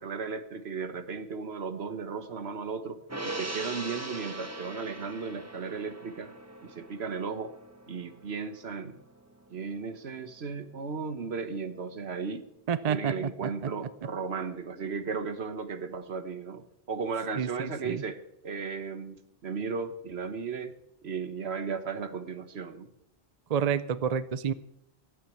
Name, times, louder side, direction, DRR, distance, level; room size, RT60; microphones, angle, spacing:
voice 1, 0.0-6.3 6.6-7.5 7.9-9.0 9.5-12.5 12.9-20.8 21.0-22.9, right 5 dB, 70° right, 11 dB, 1.4 m, -35 dB
Gong, 3.1-9.7 10.1-10.2, right 2 dB, 15° right, 1.2 m, -41 dB
voice 2, 12.7-13.7 17.4-18.0 23.5-24.5, right 7 dB, 45° right, 16 dB, 0.6 m, -29 dB
15.0 x 8.8 x 8.4 m, 0.83 s
omnidirectional pair, 1.1 m